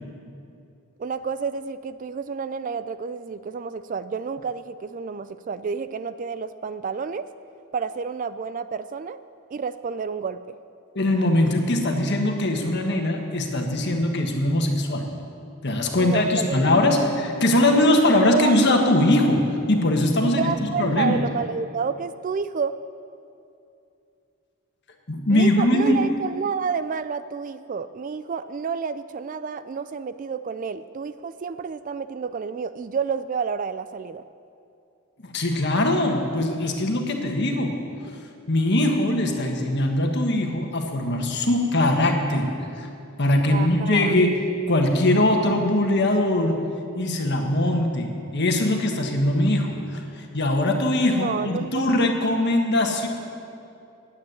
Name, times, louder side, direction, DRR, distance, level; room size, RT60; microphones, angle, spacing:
voice 1, 1.0-7.3 7.7-9.2 9.5-10.6 16.0-16.7 18.1-18.5 20.2-22.8 25.3-34.2 43.5-44.2 51.1-51.9, right 5 dB, 40° right, 13 dB, 0.3 m, -30 dB
voice 2, 10.9-15.1 15.6-21.2 25.1-26.0 35.2-37.8 38.5-42.9 43.2-44.4 44.7-46.6 46.9-53.1, left 1 dB, 50° left, 3 dB, 1.5 m, -21 dB
10.5 x 8.6 x 9.5 m, 2.5 s
head